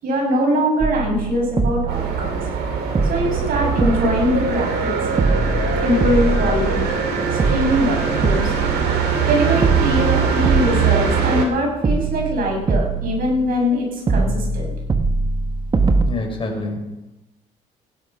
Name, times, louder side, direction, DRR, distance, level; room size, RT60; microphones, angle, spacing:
voice 1, 0.0-2.4 3.1-5.2 5.8-6.9 7.4-8.5 9.2-14.7, equal, 55° right, 0 dB, 7.2 m, -22 dB
sound 1, 0.8-2.7 3.0-4.9 5.2-7.0 7.4-9.3 9.6-11.5 11.8-13.7 14.1-16.0, right 4 dB, 25° right, 1.5 m, -23 dB
sound 2, 1.9-11.5, right 6 dB, 75° right, 3.4 m, -21 dB
voice 2, 16.1-17.2, left 2 dB, 30° left, 1 dB, 5.1 m, -28 dB
16.5 x 11.0 x 5.8 m, 0.96 s
cardioid pair, 110°, 17 cm